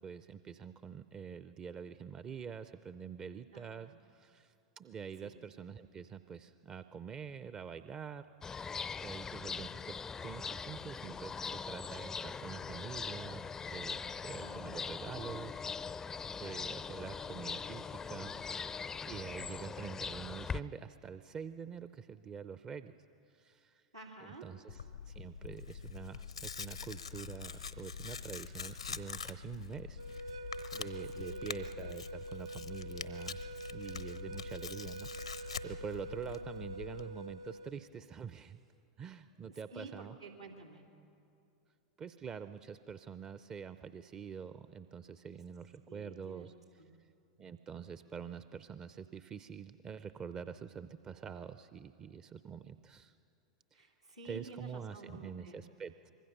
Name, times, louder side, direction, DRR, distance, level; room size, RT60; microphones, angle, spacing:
voice 1, 0.0-8.3 8.5-15.6 15.9-16.0 16.4-18.4 19.0-22.9 23.3-23.9 24.2-33.4 33.7-38.6 39.0-40.2 42.0-46.5 47.4-53.1 53.7-53.9 54.2-56.1, right 7 dB, 25° right, 12 dB, 0.6 m, -46 dB
voice 2, 3.5-3.9 5.2-5.4 14.4-14.7 23.9-24.5 31.1-31.4 39.5-40.9 45.9-46.5 46.8-46.9 53.7-55.6, right 3 dB, 90° right, -3 dB, 3.1 m, -51 dB
sound 1, 8.4-20.6, left 5 dB, 15° left, 0.5 m, -41 dB
Tearing, 24.7-37.0, left 6 dB, 80° left, 0.9 m, -45 dB
sound 2, 30.0-37.8, right 2 dB, 65° right, 0.8 m, -46 dB
25.0 x 22.5 x 6.7 m, 2.6 s
figure-of-eight pair, 90°, 3 cm